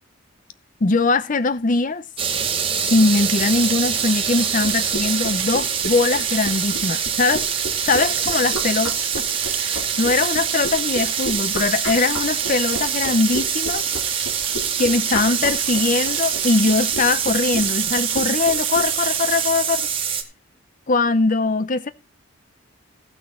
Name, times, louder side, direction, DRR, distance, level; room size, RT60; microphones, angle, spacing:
voice 1, 0.8-2.0 2.9-7.5 7.8-9.2 9.6-13.8 14.8-19.9 20.9-21.9, left 3 dB, 35° left, 0.6 m, -21 dB
sound 1, 2.2-20.2, right 7 dB, 25° right, 1.1 m, -25 dB
sound 2, 3.1-19.5, right 12 dB, 65° right, 0.9 m, -32 dB
sound 3, 4.6-18.9, left 1 dB, 70° left, 2.3 m, -32 dB
15.0 x 6.3 x 4.2 m
head